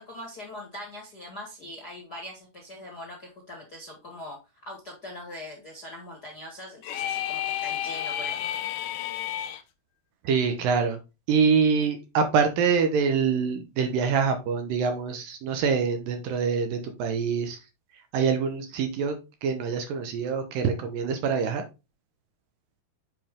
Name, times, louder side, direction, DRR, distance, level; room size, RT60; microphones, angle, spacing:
voice 1, 0.0-4.4 4.6-8.5, left 1 dB, 45° left, 0 dB, 1.3 m, -42 dB
sound 1, 6.8-9.6, left 11 dB, 80° left, 2.0 m, -31 dB
voice 2, 10.2-11.0 11.3-17.6 18.1-21.6, right 6 dB, 70° right, 6 dB, 2.4 m, -25 dB
7.5 x 5.0 x 3.6 m, 0.27 s
omnidirectional pair, 4.5 m